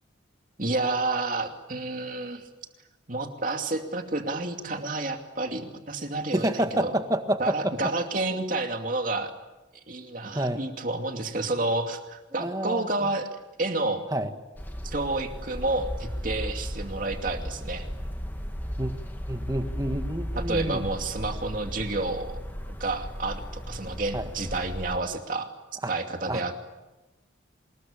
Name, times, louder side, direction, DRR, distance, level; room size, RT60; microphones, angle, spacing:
voice 1, 0.6-2.5 3.1-6.9 7.4-9.3 9.9-13.3 13.6-14.0 14.8-17.9 20.4-22.3 22.8-25.5 25.9-26.6, right 2 dB, 40° right, 5 dB, 2.6 m, -30 dB
voice 2, 6.3-7.9 10.3-10.7 12.3-13.1 14.1-14.3 18.8-18.9 19.3-20.9 24.1-24.3 25.8-25.9 26.3-26.4, right 1 dB, 20° right, 7 dB, 1.7 m, -28 dB
sound 1, 14.6-25.0, equal, 10° left, 1.9 m, -35 dB
25.5 x 21.0 x 8.9 m, 1.0 s
head